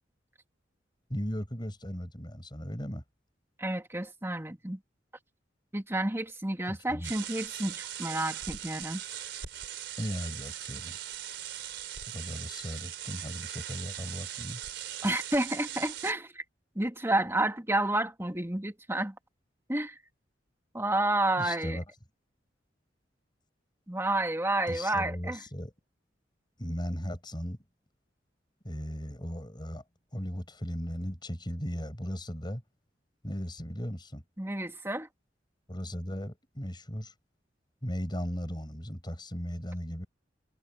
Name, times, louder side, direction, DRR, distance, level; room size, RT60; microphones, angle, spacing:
voice 1, 1.1-3.0 6.7-7.1 10.0-11.0 12.1-14.6 21.4-21.8 24.7-25.7 26.6-27.6 28.6-29.8 30.1-32.6 33.2-34.2 35.7-37.1 37.8-40.1, equal, 25° left, 7.2 m, -37 dB
voice 2, 3.6-4.8 5.7-9.0 15.0-16.4 16.8-19.1 19.7-20.0 20.7-21.8 23.9-25.4 34.4-35.1, right 1 dB, 15° right, 2.4 m, -30 dB
sound 1, 7.0-16.1, right 11 dB, 75° right, 4.0 m, -40 dB
head